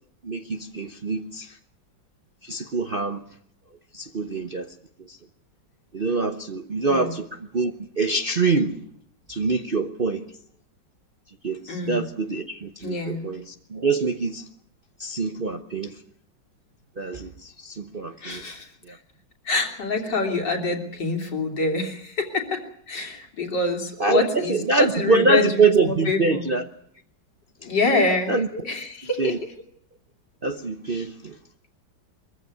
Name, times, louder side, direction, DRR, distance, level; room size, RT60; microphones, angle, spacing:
voice 1, 0.2-1.5 2.4-3.2 3.9-4.7 5.9-7.3 7.5-8.8 9.3-10.2 11.4-13.4 13.7-14.4 15.0-15.9 17.0-18.4 24.0-26.6 28.3-28.5 29.2-29.4 30.4-31.3, right 3 dB, 40° right, 6 dB, 0.9 m, -24 dB
voice 2, 6.9-7.2 11.7-12.0 12.8-13.3 18.2-19.0 19.5-26.5 27.6-29.5, left 3 dB, 65° left, 3 dB, 3.8 m, -26 dB
23.0 x 15.0 x 9.5 m, 0.67 s
omnidirectional pair, 2.1 m